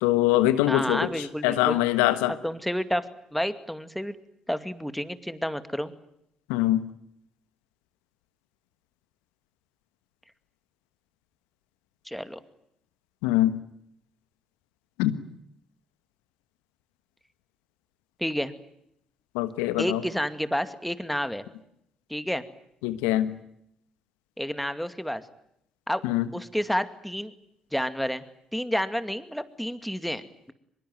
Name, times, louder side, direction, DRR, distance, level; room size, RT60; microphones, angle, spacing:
voice 1, 0.0-1.1 1.4-2.3 6.5-6.8 13.2-13.6 15.0-15.2 19.3-20.0 22.8-23.3 26.0-26.2, left 14 dB, 80° left, 12 dB, 1.3 m, -23 dB
voice 2, 0.7-1.8 2.4-3.0 3.3-4.2 4.5-5.9 12.1-12.4 18.2-18.5 19.8-21.5 22.1-22.4 24.4-25.2 25.9-26.0 26.3-27.3 27.7-28.2 28.5-30.5, equal, ahead, 11 dB, 2.3 m, -30 dB
23.5 x 22.0 x 9.3 m, 0.74 s
hypercardioid pair, 50°, 2 cm